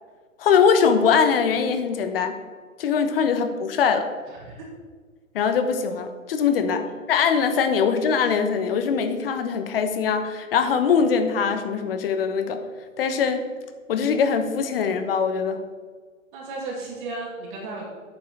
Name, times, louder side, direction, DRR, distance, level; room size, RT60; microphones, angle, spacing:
voice 1, 0.4-2.4 2.8-4.1 5.3-12.6 13.0-13.5 13.9-15.6, left 6 dB, 45° left, 8 dB, 1.2 m, -22 dB
voice 2, 4.3-4.7 16.3-17.9, right 3 dB, 35° right, -2 dB, 2.5 m, -34 dB
9.2 x 5.6 x 7.5 m, 1.5 s
hypercardioid pair, 150°, 40 cm